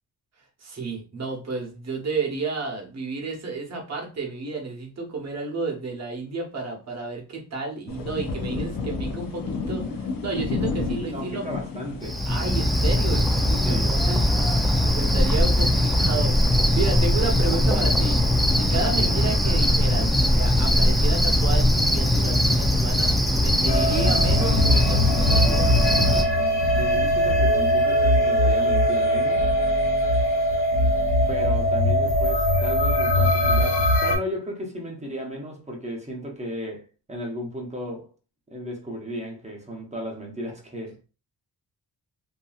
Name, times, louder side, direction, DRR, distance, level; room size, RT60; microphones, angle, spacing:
voice 1, 0.6-11.5 12.3-14.6 14.8-18.2 18.6-25.7, right 3 dB, 40° right, 1.0 m, -32 dB
sound 1, 7.9-24.0, left 4 dB, 55° left, 0.6 m, -35 dB
voice 2, 11.1-12.2 13.6-13.9 19.0-19.2 26.7-29.4 31.3-38.1 38.5-41.0, equal, 15° right, 0.8 m, -34 dB
Cricket, 12.0-26.2, left 1 dB, ahead, 0.3 m, -21 dB
sound 2, 23.7-34.2, equal, 85° left, 0.9 m, -21 dB
2.7 x 2.6 x 2.3 m
cardioid pair, 95°, 41 cm